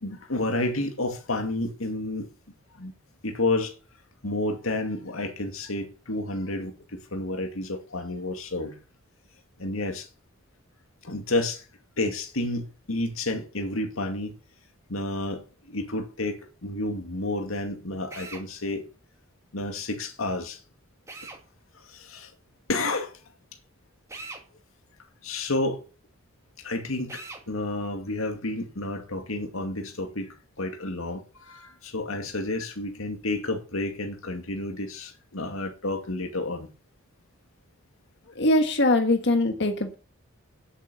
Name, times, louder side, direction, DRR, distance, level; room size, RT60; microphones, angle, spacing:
voice 1, 0.0-2.3 2.7-2.9 3.2-3.7 4.2-8.8 9.6-10.1 11.0-11.6 12.0-14.4 14.9-18.8 19.5-20.6 21.8-22.3 22.7-23.1 25.2-25.8 26.6-36.7, left 2 dB, 80° left, 2.2 m, -30 dB
Drill, 18.1-18.5 21.1-21.4 24.1-24.4 27.1-27.4, right 2 dB, 15° right, 2.2 m, -40 dB
voice 2, 38.3-39.9, left 1 dB, 55° left, 1.5 m, -22 dB
9.9 x 8.4 x 6.8 m
head